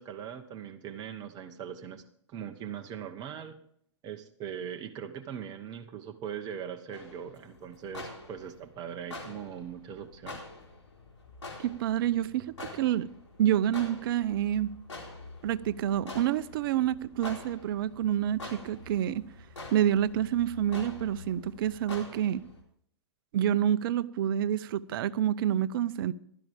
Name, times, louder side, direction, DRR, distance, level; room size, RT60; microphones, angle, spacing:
voice 1, 0.0-3.6 4.0-10.4, right 8 dB, 25° right, 1.0 m, -40 dB
sound 1, 6.9-22.6, left 2 dB, 90° left, 4.3 m, -46 dB
voice 2, 11.6-13.1 13.4-14.8 15.4-19.3 19.7-22.5 23.3-26.1, right 11 dB, 50° right, 0.6 m, -28 dB
15.5 x 12.5 x 3.5 m
hypercardioid pair, 120°, 15 cm